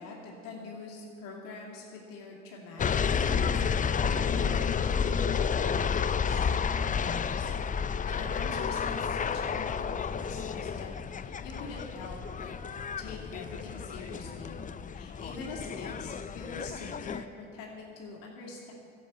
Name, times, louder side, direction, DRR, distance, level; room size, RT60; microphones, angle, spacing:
voice 1, 0.0-5.7 6.0-12.5 13.0-14.6 14.9-18.7, left 3 dB, 65° left, -2 dB, 2.5 m, -44 dB
sound 1, 2.8-17.2, left 6 dB, 25° left, 0.5 m, -31 dB
12.0 x 7.7 x 8.6 m, 2.7 s
hypercardioid pair, 70°, 36 cm